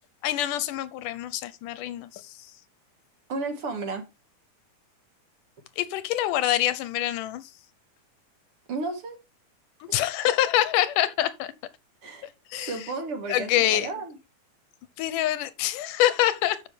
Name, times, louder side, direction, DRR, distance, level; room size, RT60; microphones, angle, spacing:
voice 1, 0.2-2.4 5.8-7.5 9.8-11.5 12.2-12.8 13.3-13.9 15.0-16.6, left 13 dB, 85° left, 2.3 m, -26 dB
voice 2, 3.3-4.0 8.7-9.2 9.9-10.0 12.0-12.3 12.5-14.2, right 3 dB, 50° right, 2.2 m, -33 dB
13.0 x 5.7 x 3.4 m
omnidirectional pair, 3.7 m